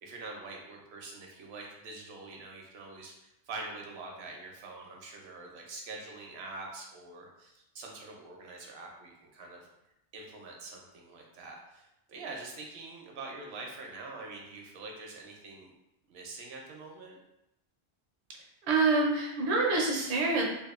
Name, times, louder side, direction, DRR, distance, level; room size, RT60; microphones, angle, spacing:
voice 1, 0.0-9.7 10.1-15.7 16.1-17.2, right 3 dB, 70° right, 0 dB, 0.8 m, -45 dB
voice 2, 18.6-20.4, right 3 dB, 50° right, -1 dB, 0.4 m, -26 dB
2.7 x 2.2 x 2.3 m, 0.88 s
omnidirectional pair, 1.1 m